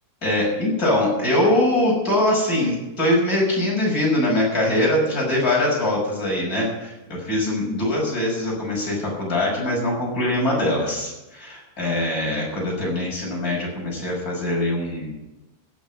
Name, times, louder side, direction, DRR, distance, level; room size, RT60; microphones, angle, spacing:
voice 1, 0.2-15.1, left 1 dB, 20° left, -3 dB, 5.9 m, -22 dB
16.0 x 8.1 x 8.2 m, 1.0 s
omnidirectional pair, 5.2 m